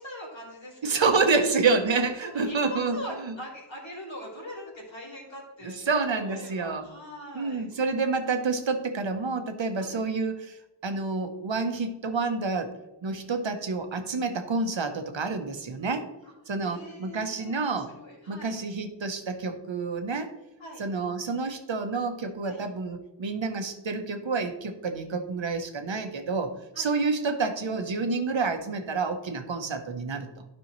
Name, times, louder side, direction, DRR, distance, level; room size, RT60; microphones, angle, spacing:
voice 1, 0.0-1.5 2.2-7.7 9.8-10.0 16.2-16.3 16.6-18.6 20.6-20.8 22.4-22.6 26.7-26.9, equal, 85° left, -3 dB, 2.9 m, -42 dB
voice 2, 0.8-3.0 3.2-3.3 5.6-6.9 7.3-10.6 10.8-12.7 13.0-16.1 16.5-17.9 18.3-20.3 20.8-30.5, right 4 dB, 85° right, 7 dB, 1.0 m, -28 dB
12.0 x 5.4 x 3.1 m, 0.99 s
wide cardioid pair, 55°, 45 cm